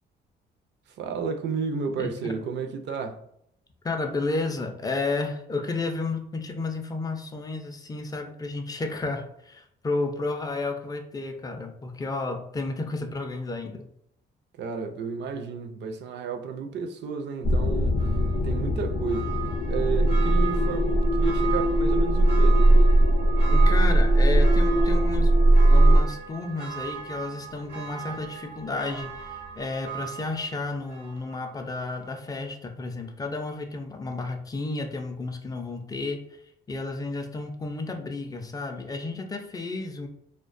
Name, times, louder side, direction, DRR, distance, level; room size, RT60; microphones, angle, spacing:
voice 1, 1.0-3.2 14.6-18.1 18.4-19.3 19.6-22.6, right 5 dB, 65° right, 0.4 m, -32 dB
voice 2, 2.0-2.3 3.8-13.9 23.5-25.3 25.7-36.2 36.7-40.1, left 3 dB, 20° left, 0.4 m, -32 dB
sound 1, 17.4-26.0, right 1 dB, 75° left, 0.5 m, -19 dB
Church bell, 18.0-31.6 32.0-32.1, right 8 dB, 85° right, 0.8 m, -38 dB
2.3 x 2.2 x 2.4 m
cardioid pair, 90°, 20 cm